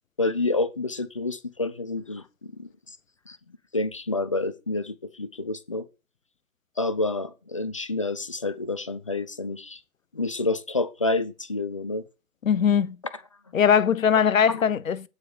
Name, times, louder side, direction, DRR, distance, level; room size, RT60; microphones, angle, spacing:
voice 1, 0.2-2.3 2.6-3.0 3.3-3.4 3.7-5.9 6.8-9.8 10.1-12.0 14.5-14.6, left 2 dB, 25° left, 0.4 m, -28 dB
voice 2, 12.4-13.0 13.5-15.1, left 7 dB, 65° left, 0.8 m, -20 dB
9.0 x 5.0 x 6.3 m
figure-of-eight pair, 125°, 42 cm